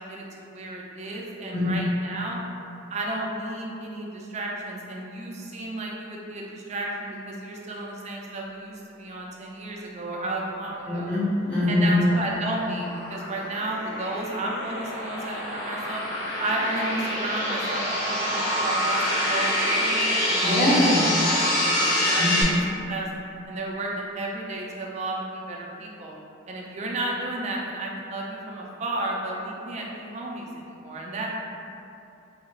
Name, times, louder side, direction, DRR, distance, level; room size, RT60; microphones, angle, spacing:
voice 1, 0.0-2.4 2.9-11.2 11.7-16.0 16.4-17.8 18.1-20.9 21.3-22.6 22.9-23.1 23.5-26.2 26.5-31.4, right 2 dB, 35° right, -2 dB, 0.4 m, -33 dB
voice 2, 10.9-11.9 20.4-21.0 22.2-22.3, left 1 dB, 25° left, -11 dB, 0.7 m, -23 dB
sound 1, 11.8-22.4, left 1 dB, 70° left, 0.7 m, -26 dB
3.5 x 2.4 x 3.0 m, 2.6 s
head